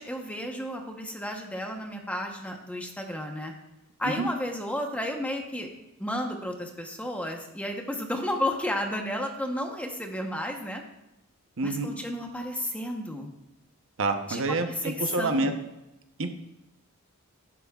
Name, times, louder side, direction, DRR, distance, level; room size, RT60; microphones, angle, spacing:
voice 1, 0.0-3.5 4.0-5.7 6.0-10.8 11.6-13.3 14.3-14.4 14.8-15.6, left 1 dB, 5° left, 2 dB, 1.0 m, -32 dB
voice 2, 11.6-11.9 14.0-15.5 16.2-16.3, right 2 dB, 60° right, 6 dB, 0.9 m, -28 dB
11.5 x 11.0 x 2.4 m, 0.93 s
head